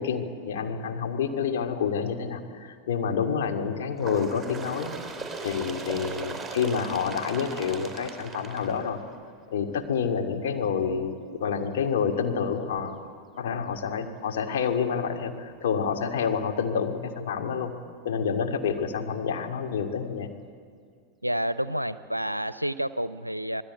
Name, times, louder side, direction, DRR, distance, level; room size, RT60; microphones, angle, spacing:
voice 1, 0.0-4.9 5.4-9.0 9.5-13.0 13.4-17.7 18.0-20.3, left 6 dB, 55° left, 4 dB, 2.5 m, -28 dB
Bird, 4.0-9.4 10.3-10.4 10.8-10.9 11.8-11.9 12.8-12.9 13.8-13.9, right 3 dB, 10° right, 4.3 m, -38 dB
voice 2, 21.2-23.6, equal, 90° right, 16 dB, 0.5 m, -29 dB
26.5 x 20.0 x 8.1 m, 2.1 s
figure-of-eight pair, 90°, 0 cm